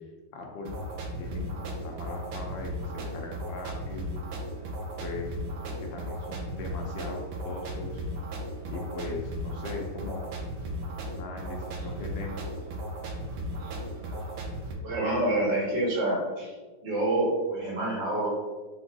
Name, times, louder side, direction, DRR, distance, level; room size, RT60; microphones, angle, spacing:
voice 1, 0.3-0.7 1.2-4.3 5.0-5.4 5.8-8.0 8.7-10.3 11.1-12.4, left 3 dB, 90° left, 1 dB, 1.5 m, -39 dB
sound 1, 0.7-14.7, right 1 dB, 75° right, 1.3 m, -36 dB
voice 2, 14.8-16.5 16.8-18.3, right 1 dB, 90° right, -4 dB, 2.1 m, -27 dB
4.5 x 2.6 x 4.0 m, 1.3 s
omnidirectional pair, 1.9 m